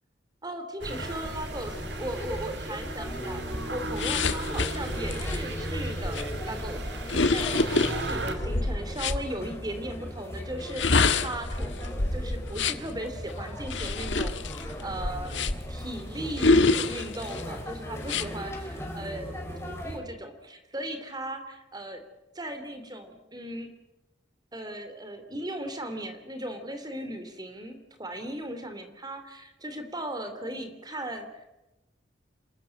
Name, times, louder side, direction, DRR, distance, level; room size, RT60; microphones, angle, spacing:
voice 1, 0.4-14.4 14.6-15.4 15.7-19.4 19.6-22.0 22.3-23.7 24.5-31.4, right 1 dB, 20° right, 7 dB, 3.1 m, -37 dB
sound 1, 0.8-8.4, right 1 dB, 65° right, 2.9 m, -36 dB
sound 2, 0.9-20.0, equal, 15° left, 5.5 m, -38 dB
sound 3, 4.0-9.2 10.6-12.9 13.6-15.8 16.4-17.4 18.0-18.3, left 3 dB, 85° left, 1.5 m, -27 dB
28.5 x 13.5 x 10.0 m, 0.96 s
head